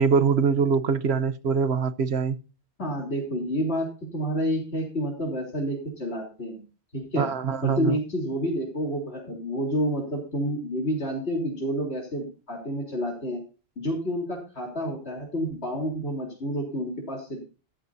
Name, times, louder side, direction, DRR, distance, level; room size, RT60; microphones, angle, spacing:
voice 1, 0.0-2.4 7.2-8.0, right 5 dB, 80° right, 1.2 m, -23 dB
voice 2, 2.8-3.9 4.1-6.6 6.9-7.3 7.6-13.4 13.8-17.4, equal, 85° left, 4.0 m, -29 dB
14.0 x 13.0 x 2.7 m
omnidirectional pair, 1.1 m